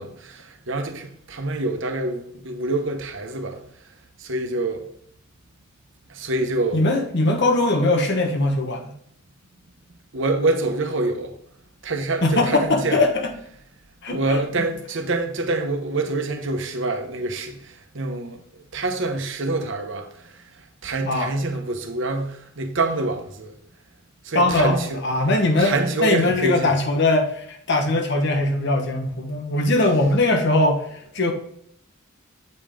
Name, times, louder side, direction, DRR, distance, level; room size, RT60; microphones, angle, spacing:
voice 1, 0.0-3.6 4.2-4.9 6.1-6.8 10.1-11.3 11.8-13.0 14.1-20.4 20.8-23.5 24.2-25.0 25.6-26.7, right 2 dB, 60° right, 1.0 m, -26 dB
voice 2, 6.7-8.9 12.2-13.3 14.0-14.2 21.0-21.3 24.3-25.8 26.0-31.3, left 2 dB, 55° left, 1.3 m, -21 dB
8.1 x 5.2 x 3.7 m
head